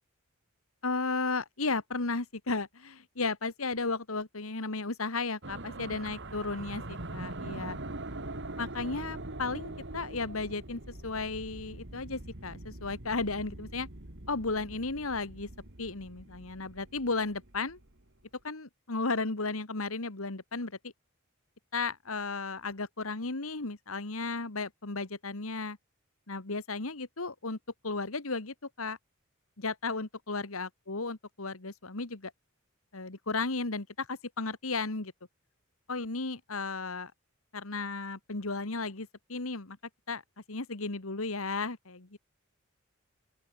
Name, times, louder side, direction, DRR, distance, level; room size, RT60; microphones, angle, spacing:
voice 1, 0.8-7.8 8.6-13.9 14.3-15.5 15.8-17.8 18.4-20.9 21.7-25.8 26.3-27.6 27.8-29.0 29.6-32.3 32.9-35.1 35.9-37.1 37.5-39.8 40.1-40.2 40.5-42.2, left 3 dB, 85° left, 2.0 m, -34 dB
sound 1, 5.4-18.0, right 2 dB, 60° right, 3.1 m, -43 dB
open air
head